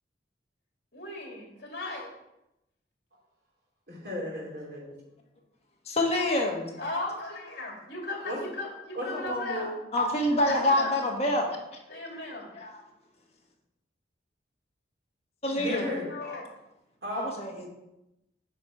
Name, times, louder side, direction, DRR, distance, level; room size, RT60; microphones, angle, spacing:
voice 1, 0.9-2.1 6.8-9.7 10.4-10.9 11.9-12.5 15.5-16.4, left 2 dB, 65° left, -1 dB, 2.3 m, -36 dB
voice 2, 3.9-4.9 8.2-8.4 8.9-9.8 15.5-16.1 17.0-17.4, equal, 65° right, -4 dB, 3.0 m, -34 dB
voice 3, 5.9-6.7 9.9-11.5 12.5-12.8 15.4-15.9 17.4-17.7, left 1 dB, 35° left, 0 dB, 1.4 m, -26 dB
8.2 x 4.6 x 4.8 m, 0.90 s
head